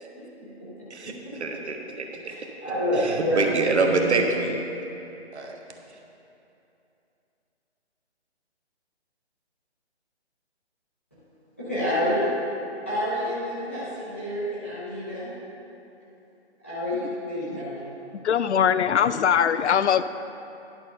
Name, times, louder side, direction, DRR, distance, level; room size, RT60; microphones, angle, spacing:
voice 1, 0.9-2.3 2.9-4.6 5.3-5.6, right 3 dB, 70° right, 2 dB, 1.3 m, -26 dB
voice 2, 2.6-3.4 11.6-12.2 12.8-15.3 16.6-17.7, left 1 dB, 10° left, -13 dB, 0.8 m, -28 dB
voice 3, 18.2-20.0, left 8 dB, 75° left, 13 dB, 0.5 m, -21 dB
11.0 x 4.4 x 6.6 m, 2.8 s
hypercardioid pair, 175°, 34 cm